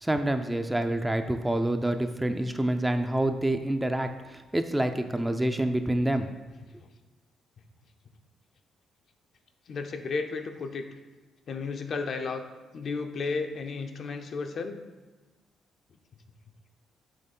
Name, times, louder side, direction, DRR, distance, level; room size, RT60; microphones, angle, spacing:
voice 1, 0.0-6.3, right 1 dB, 10° right, 7 dB, 0.4 m, -27 dB
voice 2, 9.7-11.0 11.5-12.4 12.7-14.8, left 4 dB, 55° left, 6 dB, 0.6 m, -33 dB
6.4 x 3.1 x 5.4 m, 1.2 s
cardioid pair, 90°, 0 cm